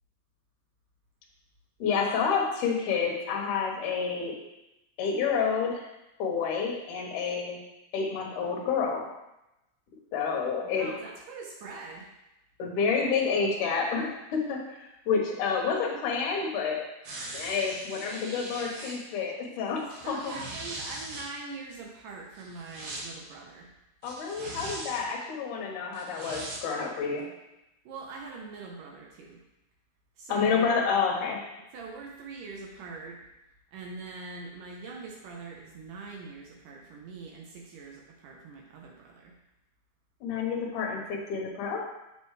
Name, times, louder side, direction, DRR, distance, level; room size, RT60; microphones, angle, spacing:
voice 1, 1.8-4.3 5.0-5.9 6.2-7.6 7.9-9.0 10.1-10.9 12.6-14.8 15.1-16.8 17.3-20.4 24.0-27.3 30.3-31.4 40.2-41.8, left 5 dB, 65° left, -1 dB, 2.4 m, -29 dB
voice 2, 10.6-12.1 20.0-23.7 27.9-29.4 30.2-30.7 31.7-33.2 33.7-39.3, right 4 dB, 70° right, 0 dB, 2.1 m, -43 dB
sound 1, 17.0-18.9 19.8-21.2 22.3-23.0 24.0-25.0 25.9-26.6 27.2-27.3, right 2 dB, 55° right, 2.5 m, -40 dB
7.3 x 7.0 x 3.2 m, 0.93 s
omnidirectional pair, 4.5 m